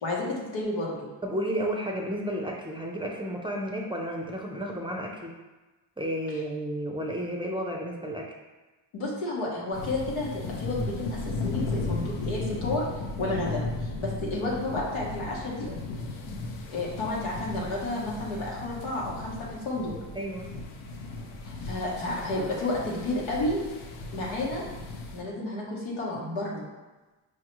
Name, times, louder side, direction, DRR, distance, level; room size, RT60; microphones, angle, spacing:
voice 1, 0.0-1.1 8.9-12.8 13.2-15.7 16.7-19.9 21.4-23.6 24.1-24.6 25.1-26.6, left 2 dB, 90° left, -4 dB, 1.0 m, -31 dB
voice 2, 1.2-5.4 6.0-8.3 20.2-20.5, right 1 dB, 10° right, 0 dB, 0.5 m, -32 dB
sound 1, 9.7-25.2, left 3 dB, 75° left, 0.7 m, -36 dB
4.5 x 2.4 x 3.0 m, 1.2 s
supercardioid pair, 55°, 49 cm